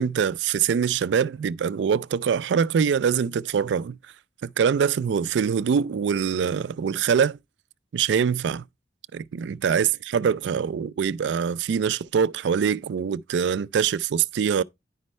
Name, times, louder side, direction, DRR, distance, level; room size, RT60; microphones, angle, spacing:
voice 1, 0.0-4.0 4.4-7.4 7.9-8.6 9.1-14.6, right 7 dB, 80° right, 0.3 m, -24 dB
9.8 x 5.3 x 3.1 m
head